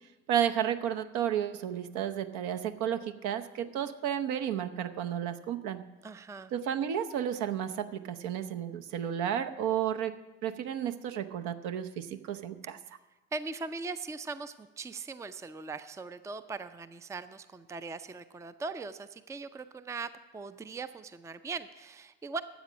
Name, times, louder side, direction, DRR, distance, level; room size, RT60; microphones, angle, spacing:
voice 1, 0.3-5.8 6.5-10.2 10.4-12.8, right 9 dB, 60° right, 8 dB, 0.8 m, -32 dB
voice 2, 6.0-6.5 12.8-13.0 13.3-22.4, right 4 dB, 10° right, 13 dB, 0.5 m, -40 dB
13.0 x 8.2 x 6.2 m, 1.2 s
figure-of-eight pair, 55°, 33 cm